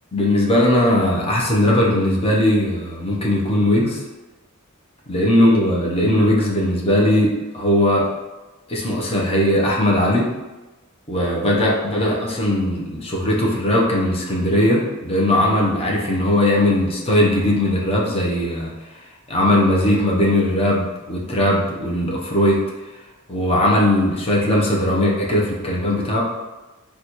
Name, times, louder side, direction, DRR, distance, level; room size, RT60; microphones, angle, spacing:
voice 1, 0.1-4.0 5.1-8.1 8.7-10.3 11.1-18.7 19.3-22.6 23.3-26.2, left 1 dB, 25° left, -3 dB, 0.6 m, -19 dB
3.9 x 2.2 x 2.9 m, 1.2 s
head